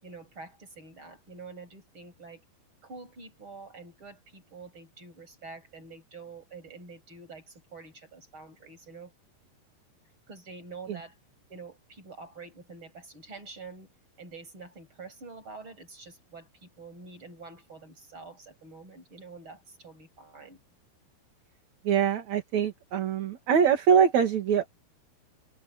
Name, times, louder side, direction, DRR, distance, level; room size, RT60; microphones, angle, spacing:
voice 1, 0.0-2.4 2.8-9.1 10.3-11.2 11.5-13.9 14.2-20.6, right 4 dB, 30° right, 8.5 m, -47 dB
voice 2, 21.8-24.7, right 7 dB, 50° right, 3.3 m, -23 dB
omnidirectional pair, 4.5 m